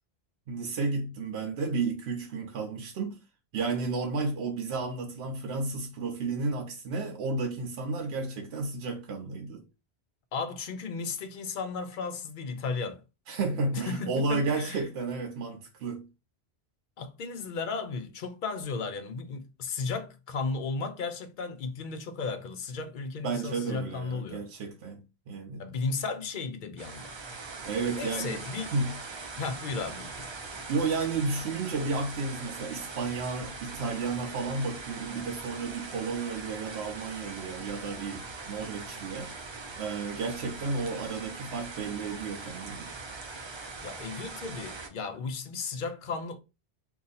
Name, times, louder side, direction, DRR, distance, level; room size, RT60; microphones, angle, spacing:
voice 1, 0.5-3.2 3.5-9.6 13.3-16.1 23.2-25.0 25.3-25.6 27.6-28.4 28.7-28.9 30.7-39.3 39.8-42.9, right 4 dB, 80° right, 0.9 m, -32 dB
voice 2, 10.3-13.0 13.7-14.8 17.0-24.4 25.6-27.2 28.0-28.7 29.4-30.3 43.8-46.4, left 4 dB, 60° left, 0.6 m, -35 dB
sound 1, 26.8-44.9, right 4 dB, 40° right, 0.4 m, -41 dB
2.6 x 2.4 x 4.0 m
omnidirectional pair, 1.1 m